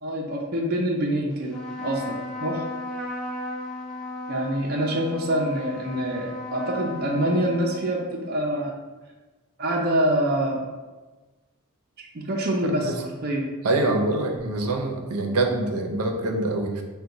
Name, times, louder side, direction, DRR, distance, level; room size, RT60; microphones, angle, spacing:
voice 1, 0.0-2.1 2.4-2.6 4.3-8.7 9.6-10.6 12.0-13.5, right 1 dB, 45° right, -1 dB, 0.5 m, -26 dB
Trumpet, 1.4-8.3, left 1 dB, 5° left, 0.6 m, -35 dB
voice 2, 13.6-16.8, right 2 dB, 85° right, 2 dB, 0.6 m, -25 dB
4.6 x 2.2 x 3.9 m, 1.2 s
head